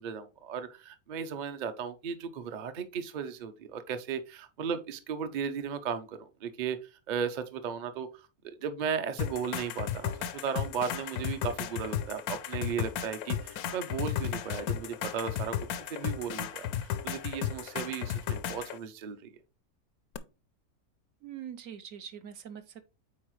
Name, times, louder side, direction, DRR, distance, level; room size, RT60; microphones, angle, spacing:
voice 1, 0.0-15.6 15.9-19.2, right 7 dB, 45° right, 0.6 m, -36 dB
sound 1, 9.2-18.8 20.1-20.2, left 9 dB, 90° left, 1.1 m, -34 dB
voice 2, 21.2-22.8, right 9 dB, 70° right, 1.1 m, -43 dB
8.6 x 4.1 x 3.1 m
omnidirectional pair, 1.5 m